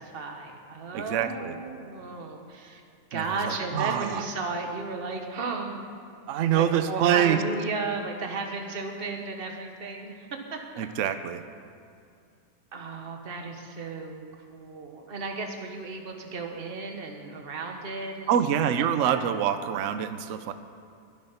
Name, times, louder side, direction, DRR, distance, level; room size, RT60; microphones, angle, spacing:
voice 1, 0.0-2.8 3.1-5.9 6.5-10.9 12.7-14.3 14.5-18.3 18.8-19.3, right 3 dB, 35° right, 3 dB, 1.3 m, -34 dB
voice 2, 0.9-1.6 3.1-4.2 6.3-7.4 10.8-11.4 18.3-20.5, right 9 dB, 65° right, 10 dB, 0.8 m, -25 dB
21.5 x 7.3 x 5.7 m, 2.4 s
omnidirectional pair, 2.1 m